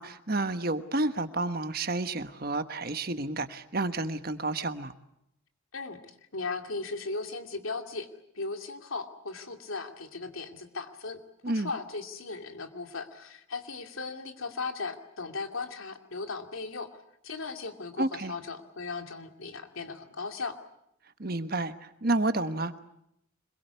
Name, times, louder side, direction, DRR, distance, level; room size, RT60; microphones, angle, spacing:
voice 1, 0.0-4.9 11.4-11.7 18.0-18.3 21.2-22.8, right 2 dB, 45° right, 10 dB, 1.3 m, -30 dB
voice 2, 6.3-8.1 8.3-11.2 11.5-16.9 17.2-20.6, left 3 dB, 80° left, 5 dB, 2.6 m, -37 dB
25.5 x 22.5 x 8.3 m, 0.78 s
head